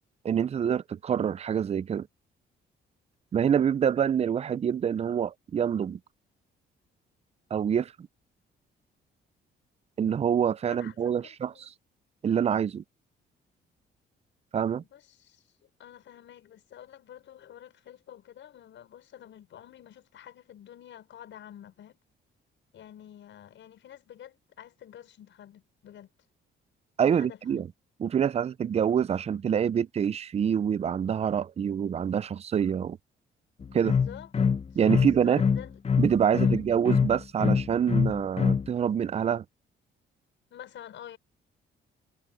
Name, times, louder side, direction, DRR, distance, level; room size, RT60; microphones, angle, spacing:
voice 1, 0.2-2.1 3.3-6.0 7.5-7.9 10.0-11.7 12.2-12.8 14.5-14.8 27.0-27.7 28.0-33.0 33.7-33.9 34.8-35.4 36.0-39.4, right 8 dB, 30° right, 0.4 m, -26 dB
voice 2, 10.7-11.7 14.8-15.4 15.8-22.0 22.7-26.1 27.0-27.6 33.8-34.3 34.9-35.7 36.4-36.6 40.5-41.2, left 10 dB, 70° left, 6.1 m, -48 dB
sound 1, 33.6-38.7, left 6 dB, 30° left, 0.8 m, -24 dB
cardioid pair, 90°, 20 cm